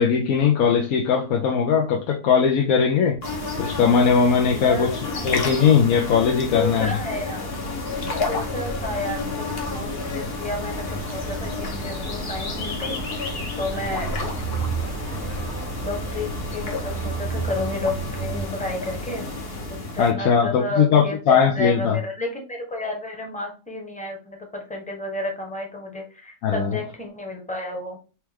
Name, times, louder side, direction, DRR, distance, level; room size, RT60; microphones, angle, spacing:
voice 1, 0.0-3.2 3.6-4.9 5.2-7.0 20.0-22.0 26.4-26.7, left 6 dB, 70° left, 1.1 m, -19 dB
sound 1, 3.2-20.1, left 3 dB, 45° left, 1.1 m, -31 dB
voice 2, 4.3-5.2 6.5-7.5 8.3-14.1 15.8-19.2 19.9-28.0, left 1 dB, 5° left, 1.0 m, -31 dB
sound 2, 7.8-18.5, right 5 dB, 85° right, 0.3 m, -34 dB
4.4 x 3.0 x 3.5 m
omnidirectional pair, 1.6 m